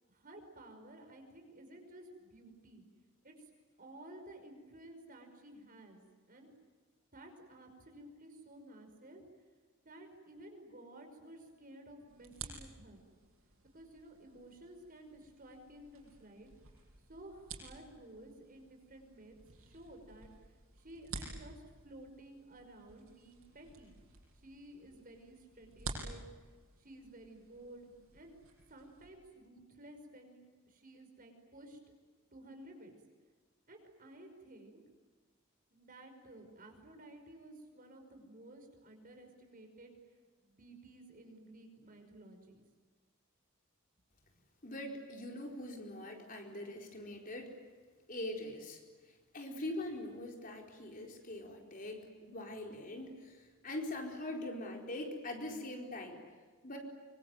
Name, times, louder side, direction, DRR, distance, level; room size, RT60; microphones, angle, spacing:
voice 1, 0.1-2.9 3.2-3.4 3.8-6.0 6.3-6.5 7.1-9.3 9.8-13.1 13.7-16.5 17.1-20.3 20.8-23.9 24.4-26.2 26.8-28.4 28.7-31.8 32.3-32.9 33.7-34.8 35.7-39.9 40.4-42.6, right 1 dB, 40° right, 5 dB, 5.4 m, -54 dB
sound 1, 12.1-29.1, right 3 dB, 85° right, 7.2 m, -51 dB
voice 2, 44.6-47.5 48.1-56.2 56.6-56.8, left 1 dB, 40° left, 2 dB, 4.4 m, -43 dB
25.0 x 25.0 x 9.3 m, 1.4 s
head